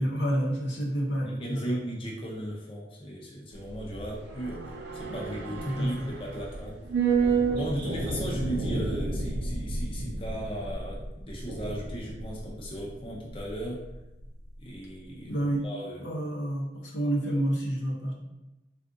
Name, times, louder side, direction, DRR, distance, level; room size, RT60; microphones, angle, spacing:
voice 1, 0.0-1.8 5.6-6.1 15.3-15.6 16.0-18.2, right 1 dB, 80° left, -2 dB, 0.7 m, -29 dB
voice 2, 1.2-6.8 7.2-13.8 14.6-15.3 15.6-16.1, equal, 30° left, -3 dB, 0.5 m, -37 dB
sound 1, 3.5-14.0 14.3-14.4, right 4 dB, 65° right, 0.5 m, -31 dB
3.6 x 2.4 x 2.5 m, 0.98 s
head